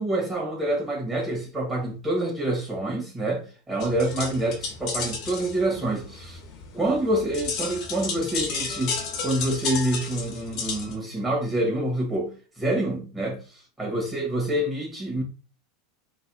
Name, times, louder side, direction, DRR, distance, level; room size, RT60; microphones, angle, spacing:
voice 1, 0.0-6.4 6.7-15.2, right 1 dB, 10° right, 1.9 m, -27 dB
sound 1, 3.8-11.0, left 5 dB, 50° left, 1.0 m, -33 dB
3.9 x 2.9 x 2.3 m
hypercardioid pair, 90°, 0 cm